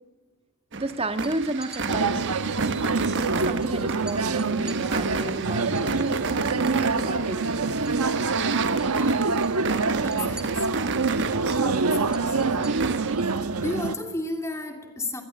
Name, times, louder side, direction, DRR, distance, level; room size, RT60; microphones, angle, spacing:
voice 1, 0.7-2.3 3.3-7.7, right 2 dB, 25° right, 1.6 m, -32 dB
sound 1, 0.7-13.2, right 4 dB, 55° right, 1.4 m, -33 dB
sound 2, 1.2-1.8 3.2-3.3 3.6-3.7 4.1-6.8 7.1-8.3 8.6-8.9 9.2-13.4, right 1 dB, 5° right, 2.3 m, -47 dB
sound 3, 1.9-13.9, right 4 dB, 80° right, 1.2 m, -25 dB
voice 2, 10.0-10.7 11.7-12.5 13.4-15.2, left 2 dB, 15° left, 2.9 m, -33 dB
26.0 x 21.5 x 8.4 m
head